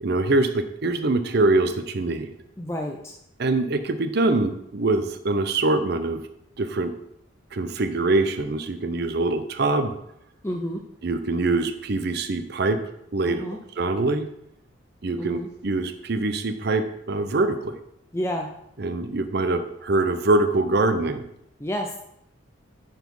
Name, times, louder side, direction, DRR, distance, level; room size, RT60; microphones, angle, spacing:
voice 1, 0.0-2.3 3.4-6.2 6.6-6.9 7.5-9.9 11.0-12.8 13.1-13.4 13.8-14.3 15.0-17.8 18.8-21.2, right 2 dB, 50° right, 9 dB, 0.6 m, -24 dB
voice 2, 2.6-3.1 10.4-10.8 13.2-13.6 15.2-15.5 18.1-18.5 21.6-22.0, equal, 15° left, 2 dB, 0.4 m, -29 dB
9.1 x 4.2 x 5.3 m, 0.78 s
head